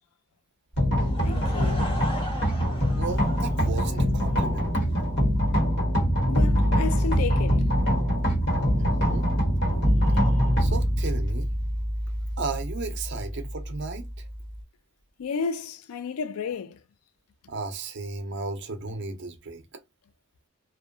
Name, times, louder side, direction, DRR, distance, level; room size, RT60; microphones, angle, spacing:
sound 1, 0.7-14.6, equal, 55° left, 1.1 m, -24 dB
Laughter / Crowd, 1.0-4.5, left 1 dB, 25° left, 0.6 m, -38 dB
voice 1, 1.2-2.0 6.3-7.7 15.2-16.8, left 5 dB, 75° left, 0.4 m, -32 dB
voice 2, 3.0-4.7 8.7-9.3 10.6-11.5 12.4-14.3 17.5-19.6, right 3 dB, 50° right, 0.6 m, -34 dB
2.6 x 2.2 x 2.3 m
head